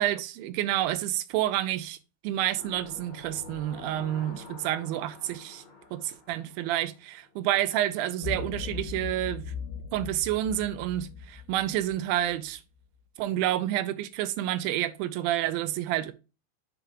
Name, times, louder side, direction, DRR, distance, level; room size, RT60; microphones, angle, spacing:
voice 1, 0.0-2.0 2.2-5.6 5.9-9.5 9.9-12.6 13.2-16.1, right 13 dB, 80° right, 2.2 m, -29 dB
sound 1, 2.5-7.4 7.8-7.9, left 4 dB, 50° left, 2.3 m, -47 dB
sound 2, 8.2-12.5, left 6 dB, 85° left, 2.9 m, -39 dB
7.6 x 5.1 x 2.9 m
omnidirectional pair, 4.4 m